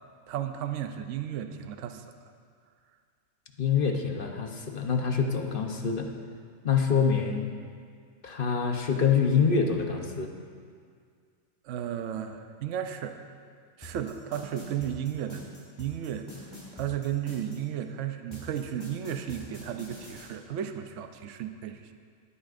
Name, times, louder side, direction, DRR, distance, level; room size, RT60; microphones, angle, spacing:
voice 1, 0.3-2.0 11.6-13.2 13.8-15.5 15.8-16.3 16.7-21.9, right 10 dB, 70° right, 7 dB, 1.0 m, -34 dB
voice 2, 3.6-6.1 6.6-7.5 8.2-10.3, left 6 dB, 45° left, 3 dB, 1.0 m, -26 dB
sound 1, 13.8-17.6 18.3-20.3, left 1 dB, 15° left, 3.8 m, -45 dB
18.5 x 12.5 x 2.6 m, 2.1 s
omnidirectional pair, 1.4 m